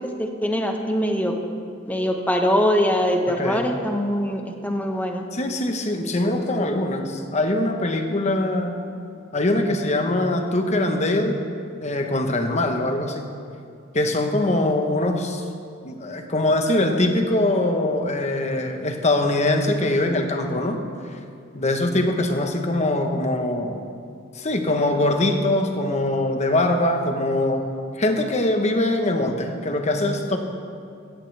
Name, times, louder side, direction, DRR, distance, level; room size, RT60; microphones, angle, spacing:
voice 1, 0.0-1.4 1.9-5.2, equal, 10° left, 3 dB, 1.1 m, -23 dB
voice 2, 5.3-8.8 9.3-11.3 11.8-13.3 13.9-15.4 15.8-20.8 21.5-23.8 24.3-27.7 28.0-30.4, left 1 dB, 35° left, 5 dB, 1.1 m, -22 dB
15.0 x 15.0 x 3.4 m, 2.4 s
head